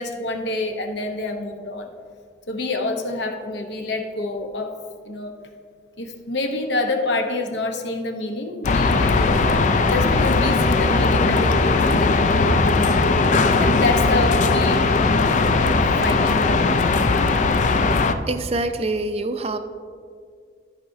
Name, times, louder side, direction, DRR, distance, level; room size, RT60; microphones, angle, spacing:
voice 1, 0.0-1.9 2.5-4.7 5.0-5.3 6.0-9.6 9.9-13.1 13.6-15.3 16.0-17.4, left 2 dB, 65° left, 4 dB, 0.8 m, -27 dB
sound 1, 8.6-18.1, left 3 dB, 40° left, 0.4 m, -18 dB
voice 2, 18.3-19.6, right 2 dB, 35° right, 9 dB, 0.5 m, -26 dB
13.5 x 5.8 x 2.7 m, 2.1 s
head